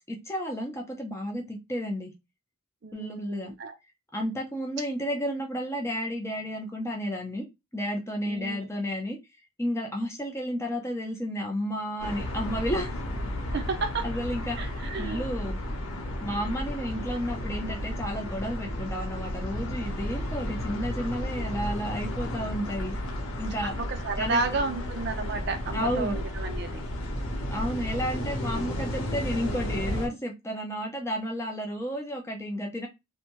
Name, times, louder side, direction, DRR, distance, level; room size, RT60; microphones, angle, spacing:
voice 1, 0.1-2.1 2.9-3.5 4.1-7.4 7.7-9.2 9.6-12.9 14.0-15.6 16.2-22.9 23.4-23.7 24.2-24.4 25.7-26.2 27.5-32.9, equal, 10° left, 0.6 m, -32 dB
voice 2, 2.8-3.7 8.3-8.6 13.5-14.1 14.6-15.2 23.6-26.8, right 3 dB, 50° right, 0.4 m, -32 dB
sound 1, 12.0-30.1, left 1 dB, 70° left, 0.8 m, -33 dB
2.7 x 2.2 x 3.0 m
head